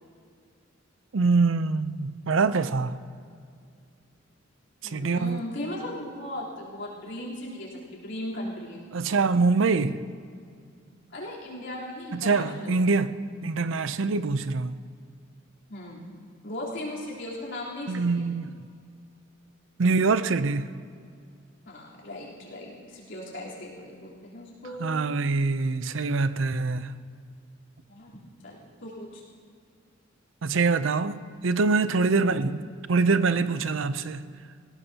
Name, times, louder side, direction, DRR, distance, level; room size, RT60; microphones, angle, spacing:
voice 1, 1.1-3.0 4.9-5.4 8.9-10.0 12.1-13.1 13.4-14.8 17.9-18.5 19.8-20.7 24.8-26.9 30.4-32.6 32.9-34.3, right 4 dB, 75° right, 0.6 m, -24 dB
voice 2, 4.8-8.8 11.1-12.8 15.7-16.1 16.4-18.3 21.7-24.9 27.9-29.2, left 1 dB, 65° left, 3.6 m, -37 dB
19.5 x 17.0 x 2.9 m
head